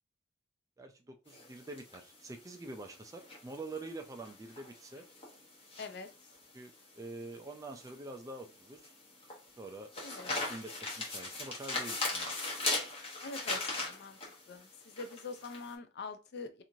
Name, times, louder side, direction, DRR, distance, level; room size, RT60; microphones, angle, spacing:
voice 1, 0.8-5.1 6.5-8.9 9.6-9.9 10.5-12.3, right 2 dB, 15° right, 0.3 m, -46 dB
sound 1, 1.3-15.7, left 2 dB, 30° left, 0.9 m, -39 dB
voice 2, 5.8-6.1 10.0-10.4 13.2-14.2 14.5-16.6, left 4 dB, 55° left, 0.4 m, -44 dB
3.0 x 2.5 x 2.6 m
head